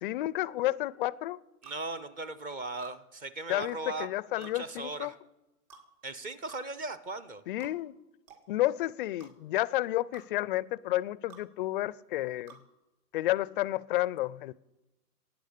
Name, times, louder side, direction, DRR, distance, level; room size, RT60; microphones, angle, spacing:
voice 1, 0.0-1.4 3.5-5.1 7.5-7.9 8.5-12.6 13.1-14.5, left 16 dB, 35° left, 0.4 m, -31 dB
voice 2, 1.6-4.1 4.4-5.1 6.0-7.4, right 2 dB, 20° right, 0.6 m, -38 dB
sound 1, 1.6-1.8 2.8-3.0 4.4-4.6 5.7-5.9 6.5-6.6 7.6-7.8 8.3-8.4 9.2-9.3 10.1-10.3 11.3-11.5 12.5-12.6, right 7 dB, 55° right, 3.7 m, -52 dB
15.5 x 9.4 x 8.3 m
hypercardioid pair, 125°, 46 cm